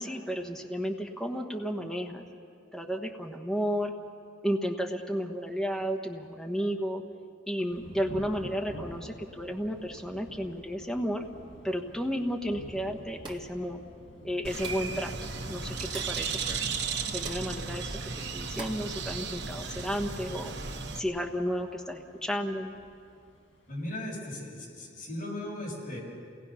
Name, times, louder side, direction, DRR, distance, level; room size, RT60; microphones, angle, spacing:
voice 1, 0.0-2.2 2.7-4.0 4.4-7.0 7.5-11.3 11.6-13.8 14.2-15.1 15.5-16.6 17.1-20.5 21.0-22.7, equal, 5° left, 2 dB, 1.3 m, -32 dB
Thunder / Rain, 7.7-24.0, equal, 80° left, 7.0 m, -50 dB
sound 1, 13.2-13.6 14.6-15.0 15.9-16.2 17.2-17.5 18.6-18.9, right 3 dB, 25° right, 1.8 m, -43 dB
Bird, 14.4-21.0, right 4 dB, 65° right, 1.4 m, -35 dB
voice 2, 23.7-26.0, left 1 dB, 50° left, -4 dB, 6.5 m, -37 dB
28.5 x 19.0 x 5.9 m, 2.4 s
head